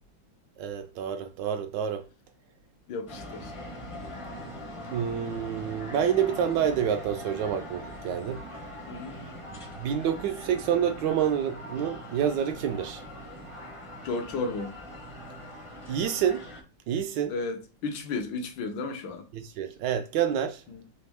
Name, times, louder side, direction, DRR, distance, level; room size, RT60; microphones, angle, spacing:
voice 1, 0.6-2.0 4.9-8.4 9.8-13.0 15.9-16.5 16.9-17.3 19.3-20.6, right 9 dB, 75° right, 1.2 m, -28 dB
voice 2, 2.9-3.5 8.9-9.2 14.0-14.8 17.3-19.3, left 3 dB, 80° left, 1.5 m, -33 dB
sound 1, 3.1-16.6, equal, 30° left, 0.6 m, -42 dB
4.1 x 3.0 x 3.4 m
omnidirectional pair, 2.0 m